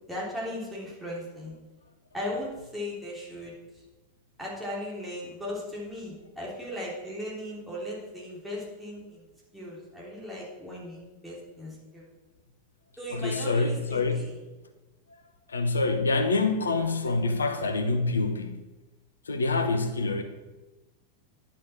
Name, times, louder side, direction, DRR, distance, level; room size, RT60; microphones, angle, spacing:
voice 1, 0.1-1.5 2.1-3.6 4.4-9.3 9.5-12.1 13.0-14.3, left 1 dB, 5° right, 3.4 m, -37 dB
voice 2, 13.1-14.3 15.1-15.2 15.5-18.6 19.2-20.2, left 3 dB, 75° left, 0.9 m, -26 dB
10.5 x 6.1 x 6.0 m
figure-of-eight pair, 90°, 0 cm